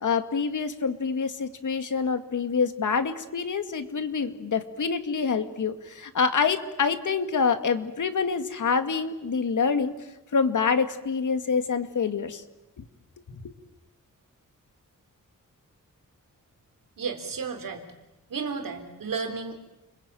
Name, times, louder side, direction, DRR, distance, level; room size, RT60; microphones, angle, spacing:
voice 1, 0.0-9.9 10.3-12.4 12.8-12.9 13.3-13.4, left 5 dB, 65° left, 8 dB, 2.2 m, -26 dB
voice 2, 17.0-17.8 18.3-19.5, right 5 dB, 90° right, 6 dB, 4.0 m, -32 dB
30.0 x 21.5 x 9.2 m, 0.98 s
wide cardioid pair, 100°, 32 cm